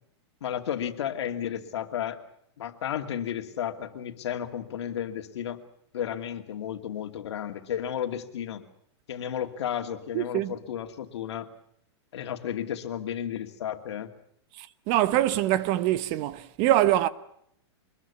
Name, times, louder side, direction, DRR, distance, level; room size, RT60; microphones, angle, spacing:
voice 1, 0.4-2.2 2.6-5.6 5.9-8.6 9.1-11.5 12.1-14.1, left 9 dB, 75° left, 2.6 m, -33 dB
voice 2, 10.1-10.5 14.6-17.1, right 14 dB, 30° right, 0.9 m, -24 dB
24.5 x 21.0 x 7.0 m
supercardioid pair, 165°, 15 cm